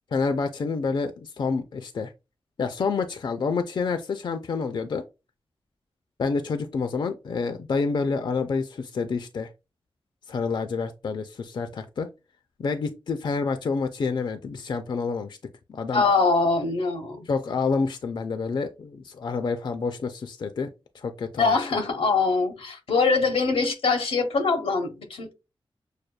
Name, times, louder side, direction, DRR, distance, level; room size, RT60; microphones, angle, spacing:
voice 1, 0.1-2.1 2.6-5.0 6.2-9.5 10.3-12.1 12.6-15.4 15.7-16.0 17.3-20.7 20.9-21.5, left 4 dB, 55° left, 0.4 m, -28 dB
voice 2, 15.9-17.3 21.4-25.3, left 4 dB, 90° left, 0.8 m, -23 dB
6.4 x 2.2 x 2.3 m
wide cardioid pair, 85°, 9 cm